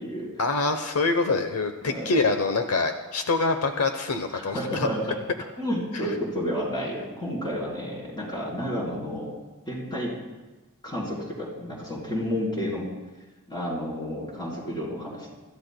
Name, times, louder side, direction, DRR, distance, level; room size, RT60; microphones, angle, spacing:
voice 1, 0.4-4.9, left 3 dB, 70° left, 7 dB, 0.9 m, -25 dB
voice 2, 1.8-2.2 4.3-5.0 5.6-9.3 9.7-10.2 10.8-12.9 13.5-15.3, equal, 20° left, -4 dB, 4.1 m, -31 dB
25.0 x 14.0 x 2.2 m, 1.2 s
head